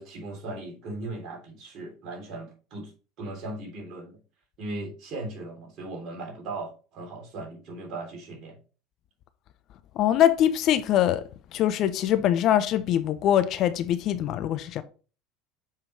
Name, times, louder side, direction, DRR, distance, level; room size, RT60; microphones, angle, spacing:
voice 1, 0.0-2.9 3.2-4.2 4.6-8.6, right 2 dB, 50° right, 3.4 m, -38 dB
voice 2, 10.0-14.8, left 11 dB, 50° left, 0.6 m, -23 dB
7.4 x 5.4 x 3.3 m
figure-of-eight pair, 70°, 0 cm